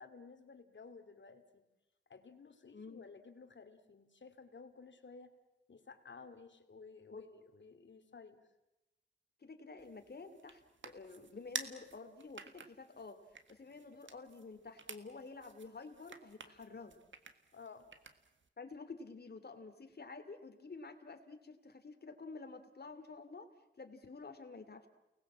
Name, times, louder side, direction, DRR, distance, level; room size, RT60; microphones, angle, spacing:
voice 1, 0.0-1.6 2.1-5.3 5.7-7.3 7.5-8.4 17.5-17.9, left 4 dB, 70° left, 8 dB, 2.4 m, -55 dB
voice 2, 2.7-3.0 7.1-7.2 9.4-13.2 13.5-17.0 18.6-23.5 23.8-24.9, left 4 dB, 55° left, 7 dB, 2.7 m, -50 dB
sound 1, 9.8-18.5, right 5 dB, 75° right, 1.7 m, -51 dB
30.0 x 19.5 x 7.4 m, 0.97 s
wide cardioid pair, 95°, 19 cm